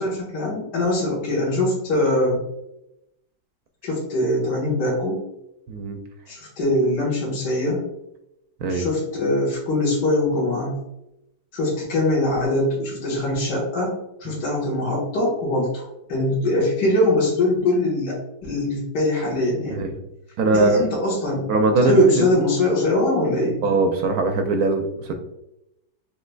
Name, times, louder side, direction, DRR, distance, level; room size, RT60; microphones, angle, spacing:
voice 1, 0.0-2.4 3.8-5.2 6.3-7.8 8.7-10.8 11.5-19.8 20.5-21.5 21.8-23.6, left 1 dB, 75° left, -5 dB, 1.9 m, -22 dB
voice 2, 5.7-6.0 8.6-8.9 19.7-19.9 20.4-20.8 21.5-22.4 23.6-25.1, right 3 dB, 70° right, 5 dB, 1.0 m, -21 dB
5.6 x 3.2 x 2.3 m, 0.86 s
omnidirectional pair, 1.9 m